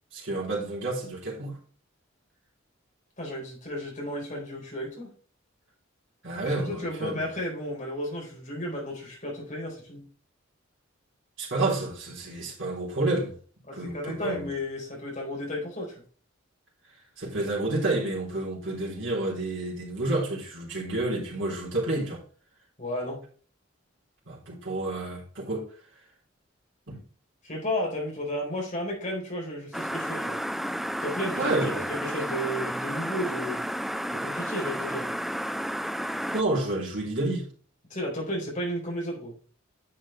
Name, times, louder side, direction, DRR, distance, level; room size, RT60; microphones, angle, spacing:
voice 1, 0.1-1.6 6.2-7.2 11.4-13.3 13.7-14.5 17.2-22.2 24.3-25.7 26.9-27.0 31.4-31.8 36.3-37.5, right 2 dB, 65° right, 3.5 m, -29 dB
voice 2, 3.2-5.1 6.4-10.0 13.7-16.0 22.8-23.2 27.4-30.4 31.0-33.6 34.1-35.1 37.9-39.4, equal, 40° left, 4.3 m, -33 dB
sound 1, 29.7-36.4, equal, ahead, 0.3 m, -32 dB
10.5 x 6.6 x 3.3 m
head